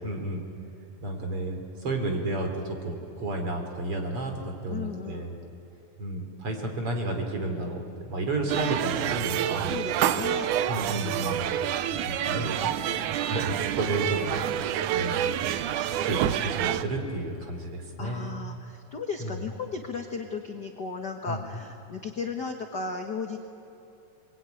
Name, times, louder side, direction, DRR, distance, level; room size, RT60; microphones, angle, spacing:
voice 1, 0.0-0.4 1.0-5.4 6.0-7.8 8.1-9.8 10.7-11.5 12.1-12.6 13.2-14.5 14.9-15.3 16.0-18.3 19.2-19.3 21.3-21.4, right 2 dB, 40° right, 3 dB, 3.9 m, -31 dB
voice 2, 4.7-5.5 9.7-10.5 12.2-13.1 18.0-23.4, left 5 dB, 50° left, 3 dB, 1.2 m, -36 dB
Irish Pub Ambience, 8.5-16.8, right 11 dB, 75° right, 2.1 m, -28 dB
28.0 x 22.0 x 9.3 m, 2.9 s
omnidirectional pair, 3.9 m